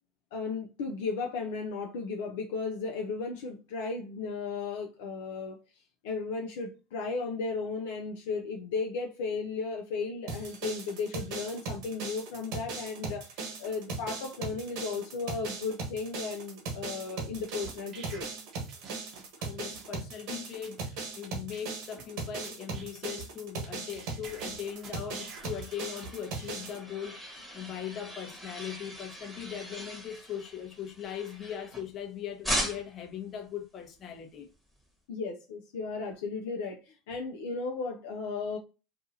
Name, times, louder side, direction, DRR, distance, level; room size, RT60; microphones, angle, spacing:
voice 1, 0.3-5.6 6.0-18.3 35.1-38.6, left 4 dB, 75° left, 0.4 m, -35 dB
sound 1, 10.3-26.8, right 4 dB, 65° right, 1.1 m, -38 dB
sound 2, 17.3-19.4 19.7-19.9 20.3-20.4 20.6-20.8 21.2-21.3 21.5-22.0 22.4-23.7 23.9-25.6 26.0-26.7, right 4 dB, 45° right, 0.8 m, -48 dB
voice 2, 19.4-34.5, left 9 dB, 40° left, 0.8 m, -40 dB
sound 3, 24.8-32.0 32.4-33.1, equal, ahead, 1.2 m, -39 dB
2.7 x 2.4 x 2.5 m
hypercardioid pair, 85°, 0 cm